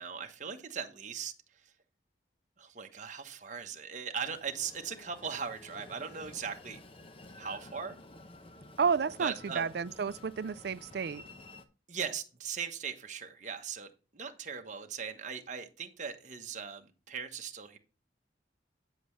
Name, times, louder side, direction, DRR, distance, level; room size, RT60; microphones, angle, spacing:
voice 1, 0.0-1.3 2.6-6.8 7.4-8.0 9.2-9.6 11.9-17.8, right 6 dB, 40° right, 1.1 m, -39 dB
Train, 4.2-11.6, left 2 dB, 30° left, 0.8 m, -52 dB
voice 2, 8.8-11.2, right 6 dB, 60° right, 0.4 m, -31 dB
8.7 x 7.7 x 3.2 m
head